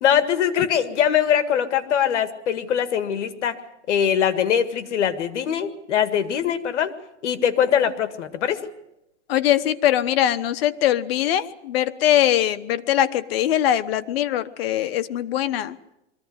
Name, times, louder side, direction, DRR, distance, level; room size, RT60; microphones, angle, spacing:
voice 1, 0.0-3.6 3.9-6.9 7.2-8.6, left 9 dB, 70° left, 11 dB, 1.9 m, -22 dB
voice 2, 9.3-15.8, left 11 dB, 55° left, 12 dB, 1.1 m, -22 dB
22.5 x 15.0 x 9.5 m, 0.88 s
supercardioid pair, 155°, 37 cm